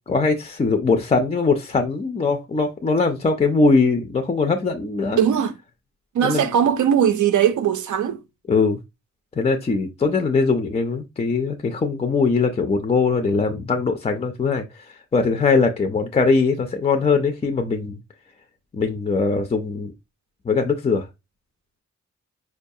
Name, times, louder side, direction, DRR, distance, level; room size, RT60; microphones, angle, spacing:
voice 1, 0.1-5.2 6.2-6.5 8.5-8.8 9.4-18.0 18.7-19.9 20.4-21.1, left 4 dB, 25° left, 0.3 m, -21 dB
voice 2, 5.2-5.5 6.1-8.2, right 9 dB, 85° right, 0.5 m, -19 dB
4.6 x 2.3 x 2.6 m
wide cardioid pair, 145°, 29 cm